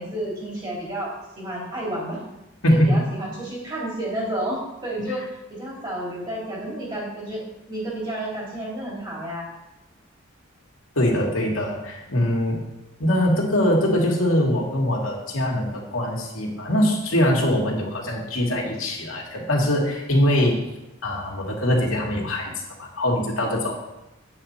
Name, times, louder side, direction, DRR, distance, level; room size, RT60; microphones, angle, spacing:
voice 1, 0.0-2.2 2.7-5.2 5.5-7.4 7.7-9.5, right 1 dB, 20° right, -4 dB, 3.2 m, -31 dB
voice 2, 2.6-3.0 11.0-12.6 13.0-20.6 21.0-22.5 22.8-23.8, left 1 dB, 80° left, -2 dB, 2.3 m, -22 dB
9.1 x 8.1 x 4.4 m, 0.96 s
head